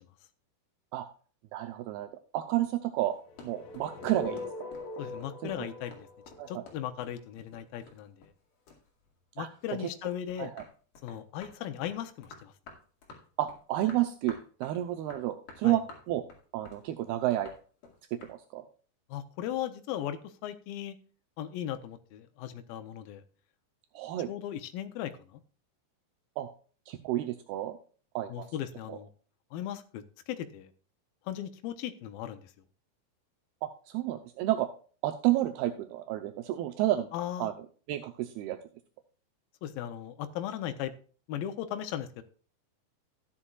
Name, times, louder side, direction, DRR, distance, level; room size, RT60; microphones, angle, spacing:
voice 1, 1.5-2.1 2.3-3.2 3.4-4.4 5.6-5.7 6.4-6.6 9.4-9.5 9.8-9.9 10.4-10.6 13.4-15.8 16.1-16.2 16.5-17.5 18.1-18.6 24.0-24.3 26.4-26.5 26.9-27.8 28.2-28.5 28.9-29.0 33.6-34.7 35.0-37.1 37.4-37.5 37.9-38.6, right 14 dB, 85° right, 6 dB, 2.3 m, -30 dB
sound 1, 3.1-8.4 8.7-9.7 10.1-18.4, left 4 dB, 55° left, 3.4 m, -52 dB
sound 2, 3.3-7.3, left 2 dB, 70° left, 1.9 m, -42 dB
voice 2, 5.0-6.1 6.5-8.3 9.4-10.5 11.0-12.5 15.6-15.8 19.1-21.0 21.4-23.2 24.3-25.4 28.3-29.1 29.5-30.7 31.3-32.5 37.1-37.5 39.6-40.9 41.3-42.2, left 11 dB, 90° left, 8 dB, 2.0 m, -37 dB
14.0 x 10.0 x 2.4 m, 0.40 s
omnidirectional pair, 5.2 m